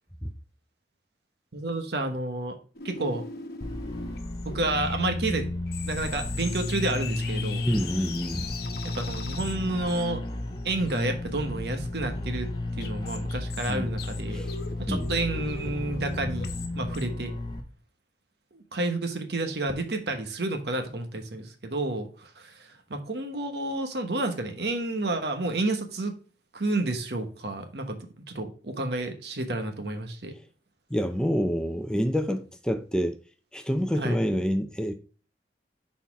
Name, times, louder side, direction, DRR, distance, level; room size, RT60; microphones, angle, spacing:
voice 1, 1.5-2.6 2.8-3.3 4.4-5.6 5.8-7.6 8.8-10.2 10.6-12.5 12.8-14.4 14.8-16.5 16.7-17.3 18.5-26.1 26.5-28.0 28.3-30.3 34.0-34.2, right 2 dB, 65° right, 1.1 m, -30 dB
sound 1, 2.7-17.0, left 4 dB, 60° left, 1.1 m, -41 dB
sound 2, 3.6-17.6, left 2 dB, 25° left, 0.9 m, -33 dB
voice 2, 7.7-8.4 13.7-13.9 14.3-14.5 14.9-15.1 30.9-33.2 33.5-34.9, equal, 5° left, 0.5 m, -27 dB
6.0 x 4.2 x 4.6 m
head